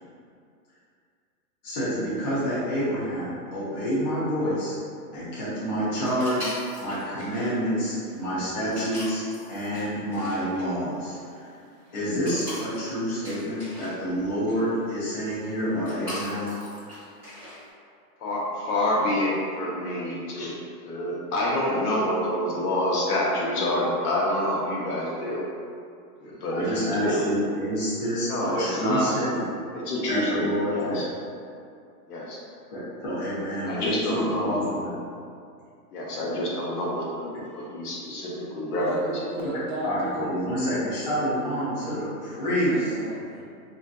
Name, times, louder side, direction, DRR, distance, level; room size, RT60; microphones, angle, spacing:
voice 1, 1.6-4.7 5.1-9.2 9.5-11.6 11.9-16.5 26.5-29.5 30.1-31.1 32.7-35.0 39.8-43.0, equal, 30° left, -11 dB, 0.4 m, -28 dB
sound 1, 6.0-17.7, left 1 dB, 5° left, 0.7 m, -42 dB
voice 2, 18.2-20.5 20.8-25.4 26.2-27.2 28.3-29.2 29.7-31.1 32.1-32.4 33.7-34.7 35.9-37.3 37.6-38.9, left 1 dB, 70° left, -4 dB, 0.8 m, -27 dB
voice 3, 38.8-40.3 42.7-43.4, right 1 dB, 45° right, -6 dB, 0.5 m, -33 dB
2.5 x 2.4 x 2.2 m, 2.3 s
hypercardioid pair, 155°, 48 cm